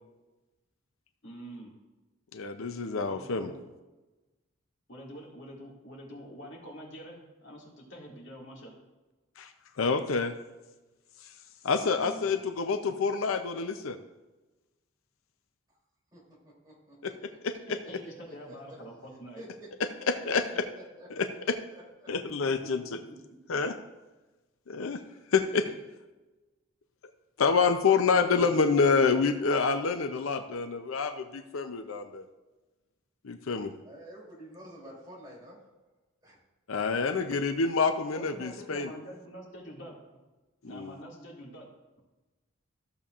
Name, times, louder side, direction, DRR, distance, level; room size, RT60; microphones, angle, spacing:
voice 1, 1.2-1.7 3.1-3.6 4.9-8.7 11.8-12.3 17.7-19.5 22.4-23.6 25.6-25.7 28.1-28.6 38.1-39.9 40.6-41.7, equal, 60° left, -3 dB, 2.2 m, -46 dB
voice 2, 2.3-3.5 9.4-9.5 9.8-10.3 11.6-14.0 17.0-17.1 17.4-17.8 20.1-20.4 21.2-21.6 22.1-22.8 23.5-23.8 24.7-25.0 25.3-25.6 27.4-32.2 33.2-33.7 36.7-38.9 40.6-40.9, left 4 dB, 85° left, 8 dB, 0.6 m, -27 dB
voice 3, 16.1-17.4 18.0-18.8 19.4-19.7 20.3-21.1 21.5-22.3 33.8-35.7 36.2-36.4, equal, 20° right, -5 dB, 3.1 m, -50 dB
14.5 x 6.9 x 2.5 m, 1.1 s
head